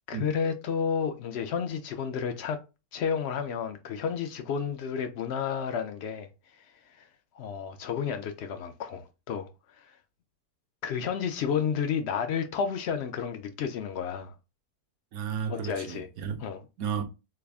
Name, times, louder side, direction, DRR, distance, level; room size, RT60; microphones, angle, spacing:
voice 1, 0.1-2.6 2.9-6.3 6.9-7.1 7.3-9.5 9.8-9.9 10.8-14.3 15.5-16.1 16.4-16.6, left 7 dB, 75° left, 0.5 m, -31 dB
voice 2, 15.1-16.4 16.8-17.0, right 7 dB, 70° right, 1.1 m, -33 dB
3.4 x 3.4 x 2.3 m
omnidirectional pair, 1.7 m